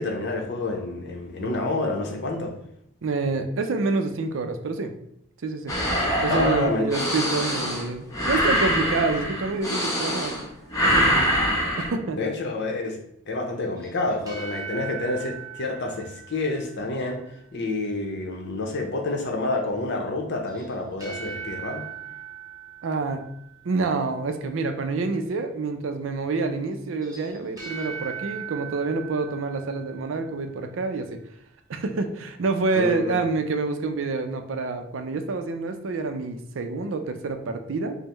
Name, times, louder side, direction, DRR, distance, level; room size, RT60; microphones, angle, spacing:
voice 1, 0.0-2.5 6.3-6.9 12.1-13.0 13.3-17.2 17.5-21.8 32.7-33.2, left 2 dB, 60° left, 2 dB, 0.7 m, -28 dB
voice 2, 3.0-4.9 5.4-5.8 6.2-10.3 10.8-11.3 11.8-12.2 22.8-23.3 23.6-31.2 31.7-38.0, right 3 dB, 70° right, 7 dB, 0.4 m, -27 dB
sound 1, 5.7-10.4 10.7-11.9, equal, 15° left, 0.8 m, -24 dB
sound 2, 13.8-17.1 20.5-23.8 26.9-30.5, right 8 dB, 20° right, 0.8 m, -39 dB
5.4 x 2.1 x 3.0 m, 0.76 s
head